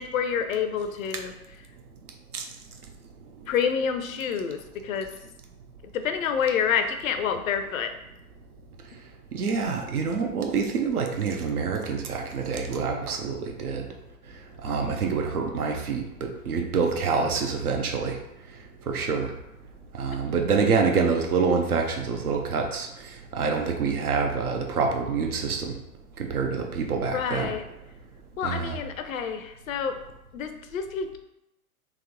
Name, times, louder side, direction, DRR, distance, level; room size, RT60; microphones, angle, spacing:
voice 1, 0.0-1.3 3.5-5.1 5.9-7.9 14.7-14.8 27.1-27.6 28.4-29.9 30.3-31.2, left 7 dB, 65° left, 8 dB, 0.6 m, -28 dB
voice 2, 9.3-13.9 14.6-18.2 18.9-19.3 19.9-22.9 23.3-25.8 26.2-27.5 28.4-28.8, right 5 dB, 75° right, 3 dB, 0.8 m, -26 dB
3.5 x 3.0 x 3.5 m, 0.87 s
figure-of-eight pair, 100°, 44 cm